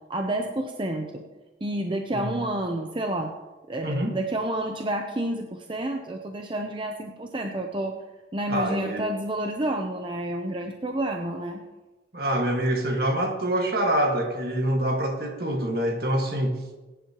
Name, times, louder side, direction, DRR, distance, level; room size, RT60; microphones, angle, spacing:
voice 1, 0.1-1.2 1.6-3.3 3.7-8.0 8.3-11.6, right 1 dB, 30° right, 0.7 m, -29 dB
voice 2, 3.8-4.2 8.5-9.1 12.1-16.6, right 1 dB, 60° right, 1.8 m, -25 dB
20.0 x 10.0 x 3.0 m
head